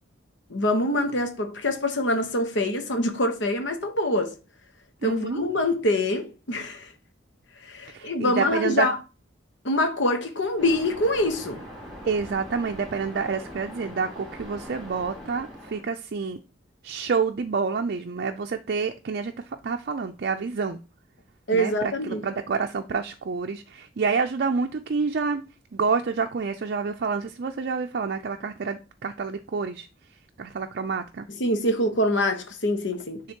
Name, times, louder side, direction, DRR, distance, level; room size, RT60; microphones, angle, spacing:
voice 1, 0.5-4.3 5.0-6.9 7.6-9.0 9.6-11.6 21.5-22.3 31.3-33.2, left 1 dB, 65° left, 1.2 m, -25 dB
voice 2, 5.0-5.4 7.9-8.9 12.0-16.4 16.8-19.3 19.6-20.8 21.5-25.4 25.7-29.9 30.4-31.3, right 5 dB, 55° right, 0.4 m, -28 dB
Waves surf, 10.6-15.8, equal, ahead, 2.7 m, -41 dB
9.8 x 3.5 x 2.9 m
head